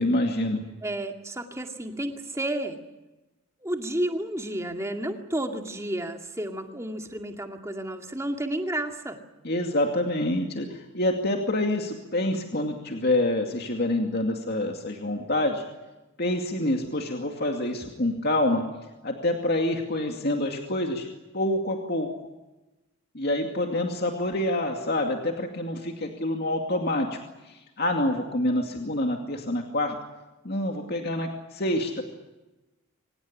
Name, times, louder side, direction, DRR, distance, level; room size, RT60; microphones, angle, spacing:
voice 1, 0.0-0.6 9.4-15.6 16.2-18.7 19.0-21.1 21.3-22.1 23.1-27.2 27.5-30.0 30.4-32.0, left 1 dB, 50° left, 3 dB, 2.4 m, -27 dB
voice 2, 0.8-2.8 3.6-9.2, right 1 dB, 15° right, 4 dB, 2.2 m, -31 dB
24.5 x 19.5 x 9.9 m, 1.1 s
head